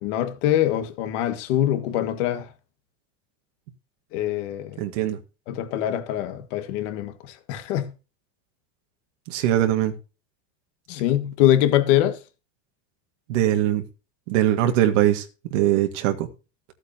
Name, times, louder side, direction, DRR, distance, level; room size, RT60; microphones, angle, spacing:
voice 1, 0.0-2.5 4.1-4.8 5.5-7.9 10.9-12.2, left 12 dB, 75° left, 1.8 m, -23 dB
voice 2, 4.8-5.2 9.3-9.9 13.3-13.8 14.3-16.3, right 12 dB, 80° right, 1.9 m, -21 dB
14.5 x 8.2 x 2.8 m
cardioid pair, 165°, 37 cm